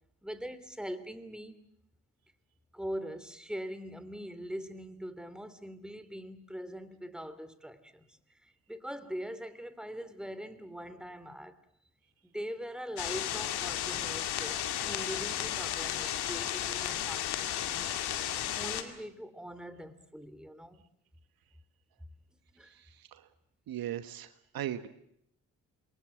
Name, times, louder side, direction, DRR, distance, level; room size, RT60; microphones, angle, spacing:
voice 1, 0.2-1.6 2.7-11.5 12.2-17.9 18.5-20.9 22.5-22.7, equal, ahead, 2.9 m, -42 dB
sound 1, 13.0-18.8, left 11 dB, 65° left, 2.3 m, -34 dB
voice 2, 22.6-23.3 23.7-24.9, right 11 dB, 60° right, 1.4 m, -39 dB
28.0 x 22.5 x 7.8 m
hypercardioid pair, 45°, 41 cm